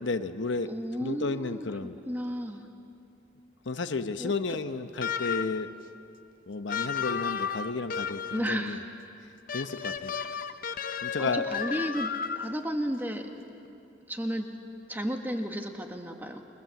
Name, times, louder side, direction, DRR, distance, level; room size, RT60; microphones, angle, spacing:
voice 1, 0.0-2.0 3.6-5.7 6.5-8.8 9.5-10.1 11.0-11.5, left 3 dB, 70° left, 9 dB, 0.9 m, -32 dB
voice 2, 0.7-2.6 4.2-4.3 8.3-8.8 10.1-10.4 11.2-13.3 14.1-14.5 14.9-16.4, equal, 10° right, 4 dB, 1.5 m, -33 dB
sound 1, 5.0-5.7 6.7-8.5 9.5-12.7, left 7 dB, 45° left, 0.7 m, -33 dB
30.0 x 20.5 x 7.7 m, 2.7 s
head